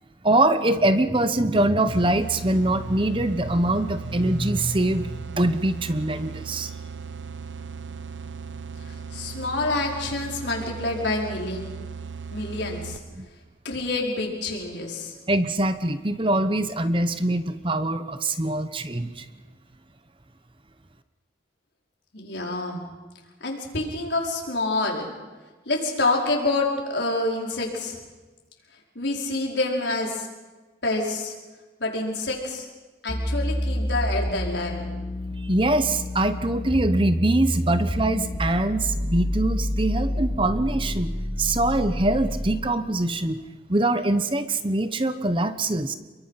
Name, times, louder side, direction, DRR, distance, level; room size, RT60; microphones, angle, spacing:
voice 1, 0.2-6.7 13.2-13.3 15.3-19.3 35.4-43.4 43.7-45.9, right 2 dB, 30° right, 11 dB, 1.0 m, -23 dB
sound 1, 1.9-13.3, right 5 dB, 90° right, 0.8 m, -37 dB
voice 2, 9.1-11.7 12.3-13.0 13.6-15.1 22.1-22.8 23.4-25.1 25.7-28.0 28.9-30.3 30.8-31.3 31.8-32.7 33.0-34.9, left 2 dB, 75° left, -1 dB, 5.1 m, -27 dB
sound 2, 33.1-42.7, equal, 45° left, 3.2 m, -28 dB
29.0 x 22.5 x 5.9 m, 1.3 s
head